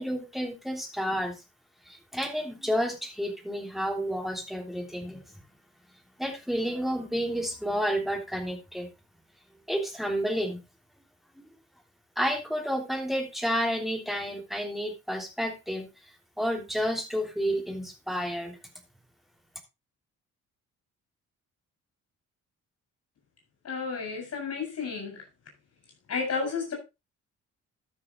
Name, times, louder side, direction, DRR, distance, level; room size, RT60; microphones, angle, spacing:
voice 1, 0.0-1.4 1.9-5.2 6.2-8.9 9.7-10.6 11.4-11.5 12.2-15.9 16.4-18.6, equal, ahead, 3.2 m, -30 dB
voice 2, 23.6-25.2 26.1-26.7, left 5 dB, 55° left, 4.6 m, -32 dB
12.5 x 6.6 x 3.8 m
cardioid pair, 90°, 30 cm